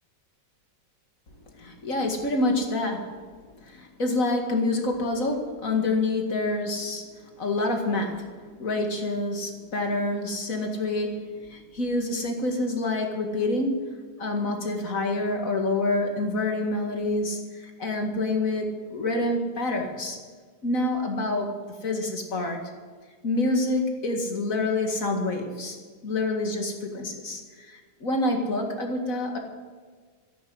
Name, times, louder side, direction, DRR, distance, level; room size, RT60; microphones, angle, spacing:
voice 1, 1.5-3.2 3.6-7.1 7.4-8.3 8.6-20.2 20.6-21.6 21.8-22.6 23.2-25.8 26.0-29.4, left 2 dB, 50° left, 3 dB, 2.4 m, -27 dB
14.0 x 11.0 x 8.0 m, 1.5 s
omnidirectional pair, 1.9 m